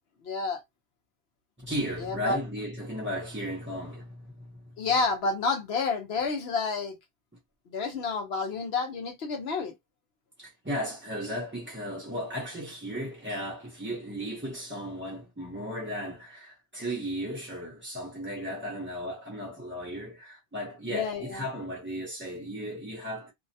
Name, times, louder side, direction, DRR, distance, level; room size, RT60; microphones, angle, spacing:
voice 1, 0.2-0.6 2.0-2.4 4.8-7.0 7.7-9.7 20.9-21.4, left 4 dB, 75° left, 0.9 m, -29 dB
voice 2, 1.6-4.7 10.4-23.3, equal, 15° right, 0.5 m, -35 dB
2.7 x 2.1 x 2.6 m
omnidirectional pair, 1.1 m